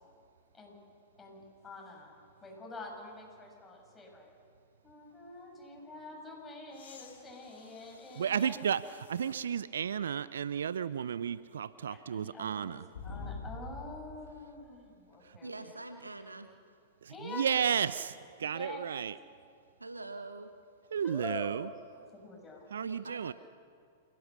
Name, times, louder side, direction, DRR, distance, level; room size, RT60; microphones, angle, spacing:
voice 1, 1.2-2.1 2.4-4.3 4.8-8.6 11.9-15.5 17.1-17.6 18.5-18.9 21.0-21.5 22.1-22.6, left 3 dB, 15° left, -1 dB, 7.5 m, -46 dB
sound 1, 6.7-9.5 10.1-10.2 12.9-14.2 16.0-16.1, left 3 dB, 65° left, 3.1 m, -47 dB
voice 2, 8.2-12.9 17.0-19.2 20.9-21.7 22.7-23.3, right 8 dB, 70° right, 17 dB, 0.5 m, -33 dB
voice 3, 15.4-16.5 19.8-20.5 22.8-23.3, right 2 dB, 90° right, 7 dB, 1.5 m, -44 dB
28.0 x 17.5 x 6.7 m, 2.3 s
figure-of-eight pair, 100°, 0 cm